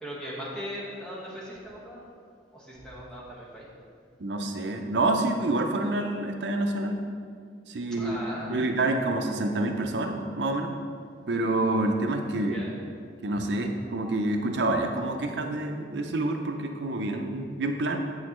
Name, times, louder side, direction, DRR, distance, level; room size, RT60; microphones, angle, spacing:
voice 1, 0.0-2.0 2.5-3.7 8.0-8.6 12.5-12.7, equal, 5° left, -7 dB, 1.4 m, -38 dB
voice 2, 4.2-7.1 7.7-8.2 8.5-10.7 11.3-12.6 13.2-18.0, right 2 dB, 85° right, 4 dB, 0.6 m, -27 dB
8.1 x 6.3 x 3.1 m, 2.1 s
head